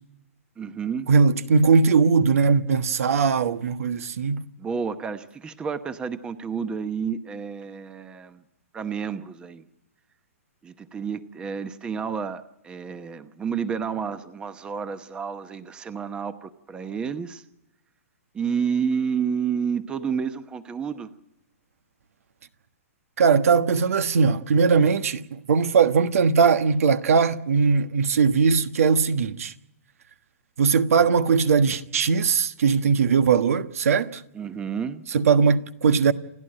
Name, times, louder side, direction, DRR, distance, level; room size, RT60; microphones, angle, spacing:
voice 1, 0.6-1.1 4.6-8.4 8.7-9.6 10.6-17.4 18.3-21.1 34.3-35.0, right 6 dB, 10° right, 0.9 m, -30 dB
voice 2, 1.1-4.4 23.2-29.5 30.6-34.2 35.1-36.1, right 5 dB, 75° right, 1.3 m, -20 dB
29.0 x 11.0 x 8.9 m
hypercardioid pair, 150°, 8 cm